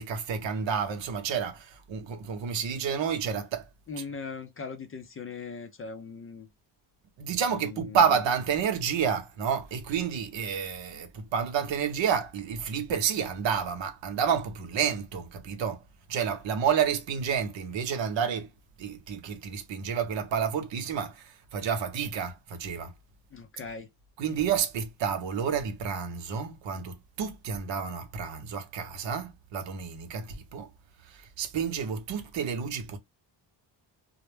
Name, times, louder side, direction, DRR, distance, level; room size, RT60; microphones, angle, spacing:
voice 1, 0.0-3.7 4.0-4.1 7.2-15.8 16.1-18.5 18.8-22.9 24.2-30.7 31.1-33.0, right 7 dB, 75° right, 0.8 m, -30 dB
voice 2, 3.9-6.5 7.5-8.2 23.3-23.9, left 5 dB, 30° left, 0.4 m, -40 dB
2.1 x 2.1 x 3.1 m
cardioid pair, 115°, 45 cm